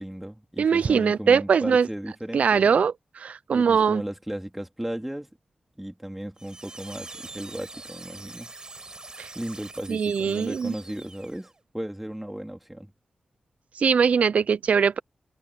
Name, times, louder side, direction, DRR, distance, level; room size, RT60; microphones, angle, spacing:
voice 1, 0.0-2.8 3.5-5.3 5.8-8.5 9.3-12.9, right 1 dB, 5° right, 3.1 m, -35 dB
voice 2, 0.6-1.9 2.3-4.0 9.2-9.3 9.9-10.7 13.7-15.0, right 6 dB, 70° right, 0.4 m, -21 dB
sound 1, 6.4-11.6, right 3 dB, 35° right, 6.0 m, -44 dB
wide cardioid pair, 95°, 2 cm